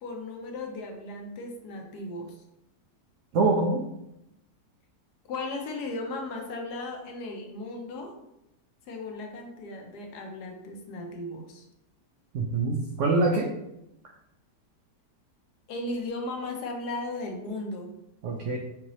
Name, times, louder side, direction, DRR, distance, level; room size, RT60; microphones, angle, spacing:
voice 1, 0.0-2.4 5.3-8.2 8.9-11.6 15.7-17.9, left 2 dB, 75° left, 2 dB, 1.2 m, -36 dB
voice 2, 3.3-3.8 12.3-13.5 18.2-18.6, right 3 dB, 80° right, 1 dB, 0.6 m, -24 dB
4.6 x 2.8 x 3.0 m, 0.85 s
omnidirectional pair, 1.8 m